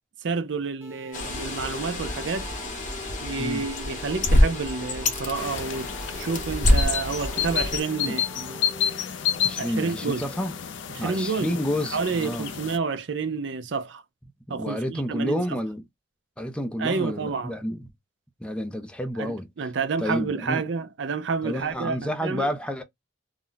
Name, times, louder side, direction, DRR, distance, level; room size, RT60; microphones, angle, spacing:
voice 1, 0.2-2.5 3.2-8.6 9.6-10.3 10.9-11.6 11.9-14.0 14.5-15.6 16.8-17.5 19.2-22.5, right 4 dB, 70° right, 0.5 m, -29 dB
sound 1, 0.8-9.0, right 1 dB, 10° right, 0.9 m, -46 dB
Bird, 1.1-7.8, left 1 dB, 45° left, 0.8 m, -26 dB
sound 2, 5.3-12.8, left 9 dB, 75° left, 0.5 m, -31 dB
voice 2, 9.4-10.5 11.0-12.5 14.5-15.8 16.4-17.9 18.4-19.5 20.0-20.6 21.4-22.8, equal, 5° left, 0.4 m, -30 dB
2.4 x 2.1 x 3.7 m
head